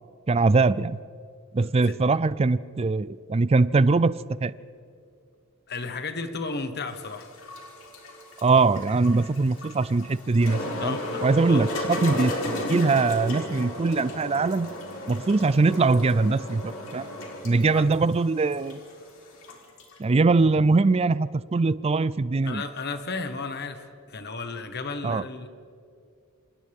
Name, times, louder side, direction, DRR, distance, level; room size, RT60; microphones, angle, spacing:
voice 1, 0.3-1.0 1.5-4.5 8.4-14.7 15.1-17.1 17.4-18.8 20.0-22.6 25.0-25.2, right 3 dB, 30° right, 17 dB, 0.4 m, -22 dB
voice 2, 1.6-1.9 5.7-7.3 10.8-11.7 17.7-17.9 22.4-25.5, left 3 dB, 50° left, 8 dB, 1.4 m, -34 dB
sound 1, 6.9-20.0, left 1 dB, 70° left, 3.8 m, -34 dB
28.0 x 27.0 x 3.6 m, 2.4 s
head